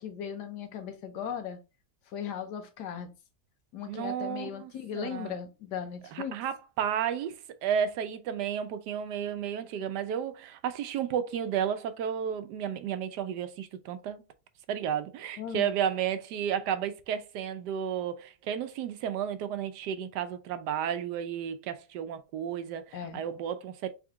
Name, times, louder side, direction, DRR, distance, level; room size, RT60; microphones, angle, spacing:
voice 1, 0.0-1.6 2.1-3.1 3.7-6.3 15.4-15.7 22.9-23.2, left 8 dB, 85° left, 1.4 m, -37 dB
voice 2, 3.9-5.3 6.1-7.4 7.6-14.2 14.7-23.9, right 9 dB, 85° right, 1.2 m, -32 dB
3.8 x 3.5 x 3.6 m
omnidirectional pair, 1.8 m